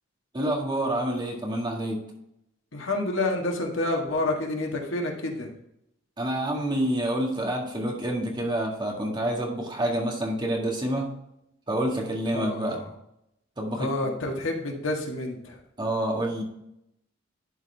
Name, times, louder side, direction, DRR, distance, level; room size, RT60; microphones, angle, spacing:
voice 1, 0.3-2.0 6.2-11.1 11.7-12.8 13.6-13.9 15.8-16.4, right 1 dB, 25° right, -1 dB, 1.8 m, -28 dB
voice 2, 2.7-5.5 12.3-12.8 13.8-15.6, left 2 dB, 85° left, 1 dB, 1.6 m, -29 dB
11.5 x 4.3 x 3.4 m, 0.80 s
head